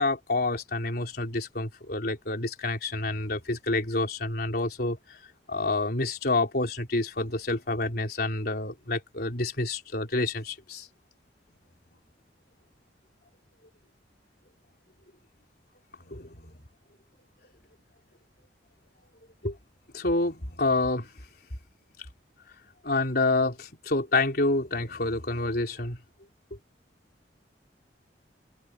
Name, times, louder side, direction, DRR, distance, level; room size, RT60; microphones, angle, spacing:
voice 1, 0.0-5.2 5.5-10.9 16.0-16.6 19.4-19.6 19.9-21.1 22.8-26.0, left 2 dB, 60° left, 4.1 m, -28 dB
head